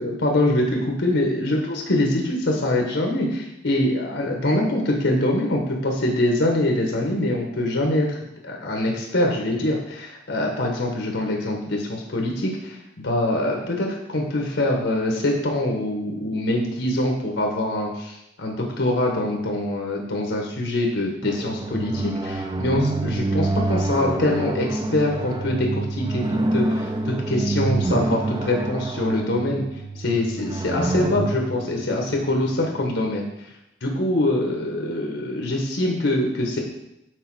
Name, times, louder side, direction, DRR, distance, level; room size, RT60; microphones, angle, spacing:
voice 1, 0.0-29.6 30.0-33.5 33.8-36.6, left 1 dB, 75° left, 0 dB, 1.1 m, -24 dB
sound 1, 21.2-32.9, right 2 dB, 20° right, 0.4 m, -27 dB
6.5 x 3.9 x 4.6 m, 0.86 s
head